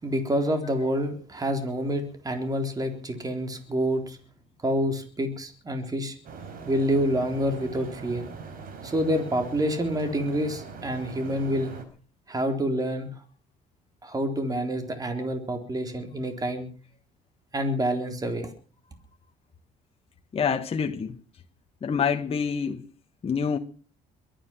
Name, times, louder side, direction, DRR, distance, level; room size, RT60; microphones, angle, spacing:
voice 1, 0.0-4.2 4.6-6.2 6.7-8.2 8.8-11.8 12.3-13.1 14.0-16.7 17.5-18.5, equal, 20° right, 3.9 m, -27 dB
sound 1, 6.2-11.8, right 5 dB, 60° right, 4.9 m, -41 dB
voice 2, 20.3-21.2 21.8-22.8 23.2-23.6, left 6 dB, 35° left, 1.5 m, -26 dB
23.0 x 10.0 x 6.0 m
cardioid pair, 110°, 17 cm